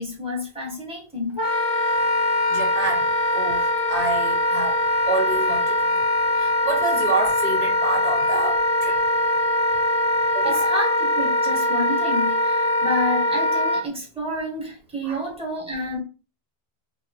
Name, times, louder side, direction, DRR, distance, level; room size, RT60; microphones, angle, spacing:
voice 1, 0.0-1.4 10.4-16.0, left 1 dB, 5° right, 1.1 m, -29 dB
Wind instrument woodwind instrument, 1.4-13.8, left 1 dB, 25° left, 0.7 m, -22 dB
voice 2, 2.5-3.6 3.9-4.8 5.1-6.0 6.4-9.0 10.3-10.7 15.0-15.2, right 3 dB, 40° right, 0.9 m, -28 dB
2.7 x 2.2 x 4.1 m
omnidirectional pair, 1.1 m